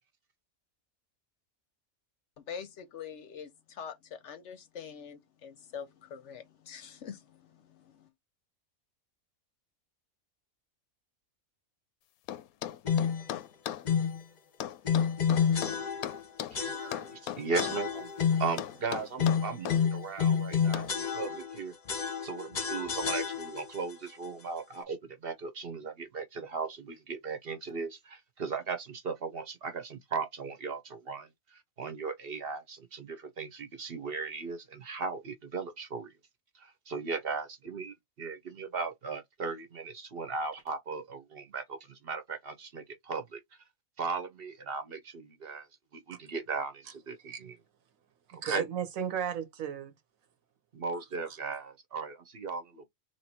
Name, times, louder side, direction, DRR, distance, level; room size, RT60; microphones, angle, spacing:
voice 1, 2.4-8.1, left 7 dB, 65° left, 0.9 m, -45 dB
sound 1, 12.3-13.9 14.6-16.6 16.9-17.8 18.6-19.8 20.7-21.0, left 11 dB, 90° left, 1.0 m, -37 dB
sound 2, 12.9-13.3 13.9-14.2 14.8-16.2 16.5-17.2 17.5-18.6 19.2-21.6 21.9-23.8, left 7 dB, 40° left, 0.8 m, -29 dB
voice 2, 16.5-18.1 18.4-21.7 22.2-36.1 36.5-43.4 44.0-45.7 45.9-47.6 48.3-48.6 50.7-52.8, right 4 dB, 50° right, 0.9 m, -37 dB
voice 3, 48.3-49.9 51.3-51.4, right 8 dB, 75° right, 1.2 m, -35 dB
3.4 x 3.1 x 4.2 m
omnidirectional pair, 1.5 m